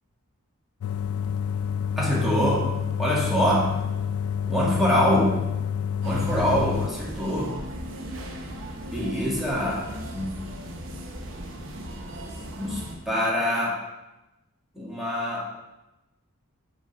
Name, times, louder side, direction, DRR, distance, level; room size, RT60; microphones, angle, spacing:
sound 1, 0.8-6.9, left 8 dB, 75° left, 0.3 m, -28 dB
voice 1, 2.0-2.7 3.0-3.7 4.5-5.4 6.0-7.5 8.9-10.4 12.6-12.8 13.1-13.8 14.8-15.5, equal, ahead, -6 dB, 1.8 m, -24 dB
sound 2, 6.0-13.0, equal, 60° right, 0.9 m, -37 dB
5.8 x 5.2 x 5.1 m, 1.0 s
head